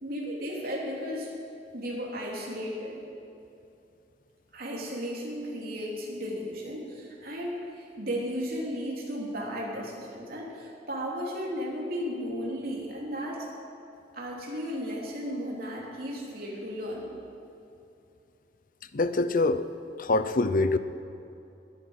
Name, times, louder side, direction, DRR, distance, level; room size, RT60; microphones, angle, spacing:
voice 1, 0.0-1.3 1.7-3.0 4.5-13.5 14.1-17.1, equal, 55° right, -3 dB, 3.1 m, -34 dB
voice 2, 18.9-19.7 20.0-20.8, left 2 dB, 50° left, 12 dB, 0.6 m, -24 dB
20.0 x 8.4 x 6.4 m, 2.8 s
head